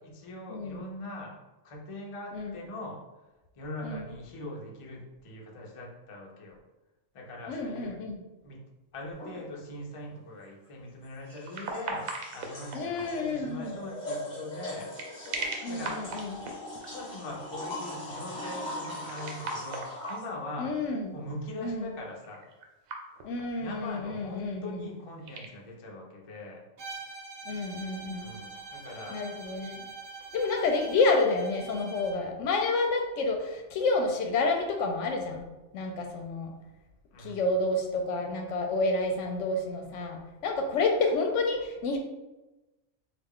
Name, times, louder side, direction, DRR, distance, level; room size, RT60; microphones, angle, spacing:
voice 1, 0.0-1.4 1.6-3.0 3.6-6.6 7.1-8.0 8.4-8.6 8.9-14.9 15.7-16.0 16.7-20.8 21.1-22.5 23.6-26.6 28.2-29.2 37.1-37.4, left 1 dB, 55° left, -1 dB, 0.3 m, -41 dB
voice 2, 7.5-8.2 12.7-13.8 15.6-16.5 20.6-21.1 21.6-21.9 23.2-24.8 27.4-28.3 29.1-29.9 30.3-35.4 35.7-36.5 37.2-42.0, left 3 dB, 70° left, 3 dB, 0.8 m, -29 dB
sound 1, 9.1-9.6 11.2-13.2 14.7-16.9 18.8-20.4 22.2-23.6 23.8-23.9 25.0-25.5, right 3 dB, 85° right, 1.0 m, -39 dB
sound 2, 9.2-9.3 11.0-20.3, left 1 dB, 20° left, 1.0 m, -40 dB
Bowed string instrument, 26.8-32.3, right 4 dB, 55° right, 0.6 m, -44 dB
3.3 x 2.4 x 3.5 m, 1.1 s
omnidirectional pair, 1.4 m